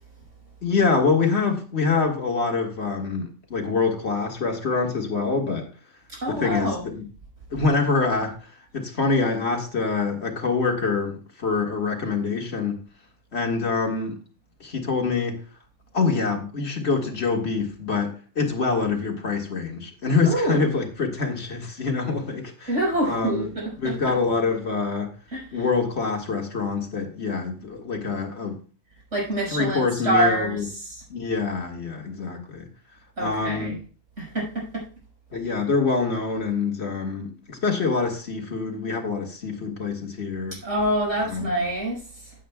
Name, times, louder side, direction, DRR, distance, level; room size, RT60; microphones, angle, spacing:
voice 1, 0.6-5.7 6.3-7.0 7.5-8.4 8.7-12.8 13.3-14.2 14.6-15.4 15.9-22.7 23.0-25.1 25.5-28.6 29.5-30.7 31.1-32.7 33.2-33.7 35.3-40.6 41.3-41.5, left 4 dB, 60° left, 1.9 m, -25 dB
voice 2, 6.1-6.8 20.3-20.7 22.7-24.1 25.3-25.7 29.1-31.0 33.2-33.8 34.2-34.8 40.6-42.3, right 1 dB, 70° right, 5.5 m, -26 dB
15.0 x 8.5 x 2.3 m
omnidirectional pair, 1.3 m